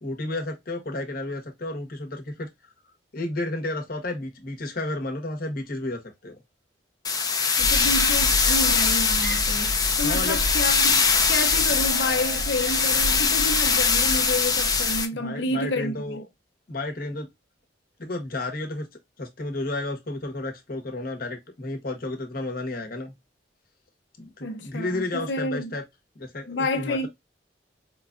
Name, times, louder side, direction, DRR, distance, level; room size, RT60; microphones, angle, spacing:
voice 1, 0.0-2.5 3.1-6.4 10.0-10.4 15.1-16.2 16.7-17.3 18.0-18.9 19.2-23.1 24.2-25.8 26.1-27.1, left 2 dB, 55° left, 1.1 m, -32 dB
sound 1, 7.0-15.1, left 5 dB, 20° left, 0.6 m, -22 dB
voice 2, 7.6-16.2 24.4-25.7 26.5-27.1, left 1 dB, 80° left, 0.8 m, -29 dB
sound 2, 7.6-15.0, equal, 45° right, 0.5 m, -32 dB
4.6 x 2.3 x 2.4 m
head